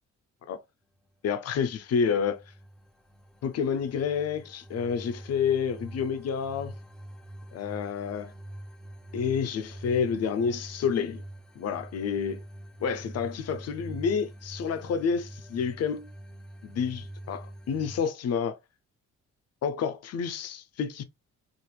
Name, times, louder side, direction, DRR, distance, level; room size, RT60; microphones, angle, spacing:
voice 1, 1.2-2.4 3.4-6.7 7.5-8.3 9.1-11.2 11.6-12.4 12.8-16.1 16.6-18.6 19.6-21.0, left 6 dB, 55° left, 0.6 m, -29 dB
sound 1, 1.7-18.0, right 1 dB, 5° left, 0.5 m, -44 dB
3.0 x 2.5 x 2.3 m
cardioid pair, 90°, 30 cm